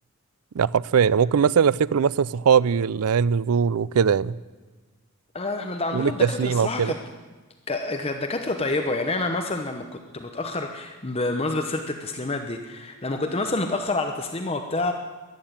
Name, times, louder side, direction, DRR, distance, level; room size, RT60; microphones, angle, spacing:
voice 1, 0.6-4.3 5.9-7.0, right 7 dB, 90° right, 0.4 m, -21 dB
voice 2, 5.3-7.0 7.7-14.9, left 2 dB, 25° left, 0.9 m, -28 dB
14.5 x 11.0 x 8.9 m
head